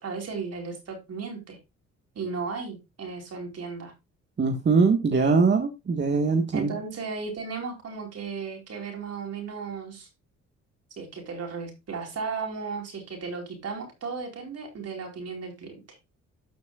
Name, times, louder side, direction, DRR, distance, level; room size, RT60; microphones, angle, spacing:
voice 1, 0.0-1.6 2.1-3.9 6.5-10.1 10.9-16.0, right 5 dB, 55° right, 3 dB, 4.5 m, -35 dB
voice 2, 4.4-6.7, right 4 dB, 35° right, 4 dB, 1.6 m, -22 dB
13.0 x 6.3 x 2.4 m, 0.23 s
cardioid pair, 90°, 30 cm